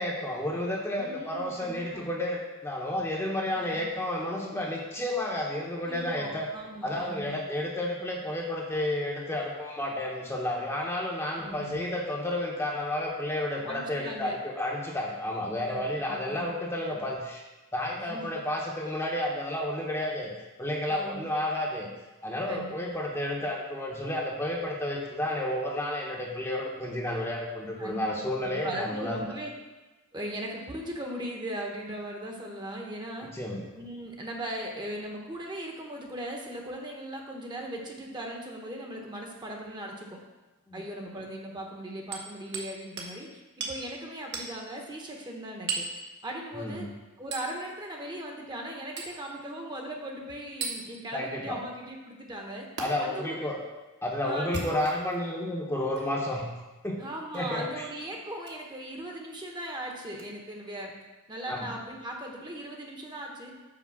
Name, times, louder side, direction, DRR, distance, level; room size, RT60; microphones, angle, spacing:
voice 1, 0.0-6.5 6.8-17.4 17.7-20.3 20.6-21.9 22.2-29.3 33.3-33.6 40.7-40.8 46.5-46.9 51.1-51.6 52.8-53.6 54.0-56.5 56.8-57.0 57.3-57.9 61.5-61.7, left 1 dB, 10° left, -2 dB, 0.9 m, -31 dB
voice 2, 1.0-2.1 3.5-3.9 5.8-7.4 11.4-11.8 13.6-14.3 15.6-16.5 18.0-18.4 20.9-21.2 22.5-22.8 27.8-28.1 28.4-29.5 30.1-33.3 33.8-40.2 40.7-45.9 46.2-46.9 47.2-52.7 53.0-53.5 54.2-54.8 57.0-60.9 61.3-63.6, right 1 dB, 20° right, 0 dB, 1.0 m, -39 dB
Hammer, 42.1-42.7 43.0-43.1 43.6-43.8 44.3-44.5 45.7-46.0 47.3-47.5 49.0-49.2 50.6-50.8 52.8-52.9 54.4-55.2 55.9-56.1 57.3-57.5 58.4-58.6 60.2-60.3, right 4 dB, 50° right, 1.2 m, -35 dB
6.0 x 5.0 x 6.2 m, 1.1 s
head